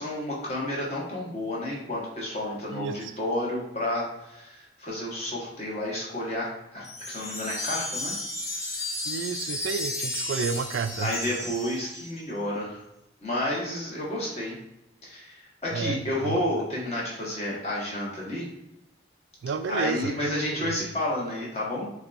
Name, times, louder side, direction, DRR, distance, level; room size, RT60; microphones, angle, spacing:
voice 1, 0.0-8.1 8.7-8.8 11.0-12.8 13.2-14.6 15.0-18.5 19.7-21.9, left 1 dB, 35° left, -5 dB, 1.2 m, -31 dB
voice 2, 2.7-3.1 9.1-11.2 15.7-16.4 19.4-20.8, right 5 dB, 80° right, 9 dB, 0.3 m, -31 dB
Wind chime, 6.8-12.2, left 1 dB, 15° left, 0.6 m, -33 dB
6.8 x 2.3 x 2.5 m, 0.88 s
head